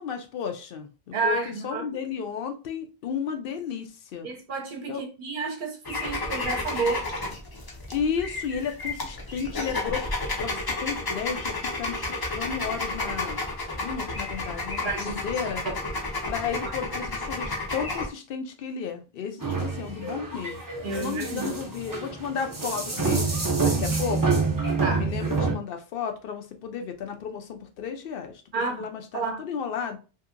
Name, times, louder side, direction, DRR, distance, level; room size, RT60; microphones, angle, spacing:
voice 1, 0.0-4.3 4.9-5.0 7.9-10.1 10.4-12.0 12.3-13.4 13.8-15.6 16.3-20.6 21.0-24.4 25.0-28.4 28.7-30.0, left 7 dB, 65° left, 0.7 m, -33 dB
voice 2, 1.1-1.8 4.2-7.1 14.8-15.2 20.8-21.5 24.8-25.1 28.5-28.8 29.1-29.4, right 4 dB, 60° right, 0.8 m, -30 dB
sound 1, 5.8-18.1, left 2 dB, 30° left, 0.5 m, -32 dB
sound 2, 19.4-25.5, right 4 dB, 25° right, 0.6 m, -27 dB
2.8 x 2.6 x 2.5 m
omnidirectional pair, 1.0 m